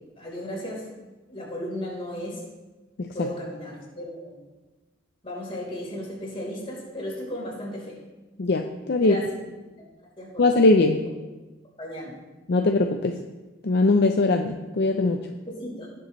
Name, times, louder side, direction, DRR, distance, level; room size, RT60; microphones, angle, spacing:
voice 1, 0.2-0.9 1.3-2.4 3.1-4.4 5.2-8.0 9.0-9.2 9.6-9.7 10.2-10.5 11.8-12.2 15.4-15.9, equal, 30° left, -4 dB, 3.8 m, -35 dB
voice 2, 8.4-9.1 10.4-11.0 12.5-13.1 13.6-15.2, left 2 dB, 55° left, 4 dB, 0.5 m, -21 dB
18.0 x 6.9 x 3.1 m, 1.2 s
head